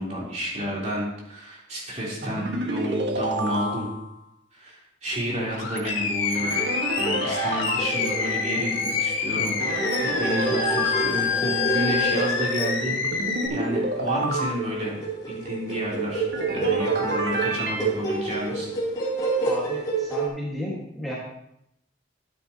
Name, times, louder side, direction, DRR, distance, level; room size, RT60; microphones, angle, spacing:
voice 1, 0.0-3.9 4.5-6.5 7.0-13.0 13.5-15.0 15.3-18.7, equal, 35° right, -5 dB, 3.5 m, -30 dB
sound 1, 2.2-4.1 6.3-7.9 9.6-11.2 13.0-14.5 16.3-17.8, right 1 dB, 60° right, 1.4 m, -29 dB
Animal, 5.5-13.5, left 6 dB, 85° left, 1.6 m, -27 dB
sound 2, 7.8-20.3, right 4 dB, 20° left, 3.0 m, -29 dB
voice 2, 19.4-21.2, left 1 dB, ahead, -6 dB, 1.6 m, -33 dB
13.5 x 9.2 x 2.9 m, 0.78 s
head